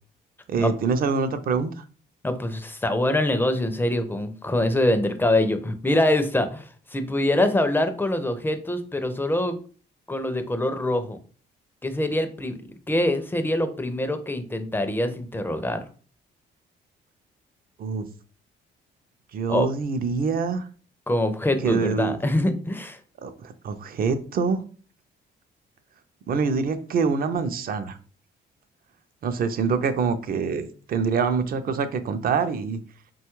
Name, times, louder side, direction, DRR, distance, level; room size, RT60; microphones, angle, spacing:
voice 1, 0.5-1.8 17.8-18.0 19.3-20.7 21.6-22.2 23.2-24.6 26.3-28.0 29.2-32.8, right 5 dB, 50° right, 10 dB, 0.4 m, -25 dB
voice 2, 2.2-9.6 10.1-11.2 11.8-12.6 12.9-15.9 19.5-19.7 21.1-23.0, left 1 dB, 10° left, 9 dB, 0.4 m, -24 dB
3.0 x 2.3 x 3.0 m, 0.40 s
cardioid pair, 90°, 20 cm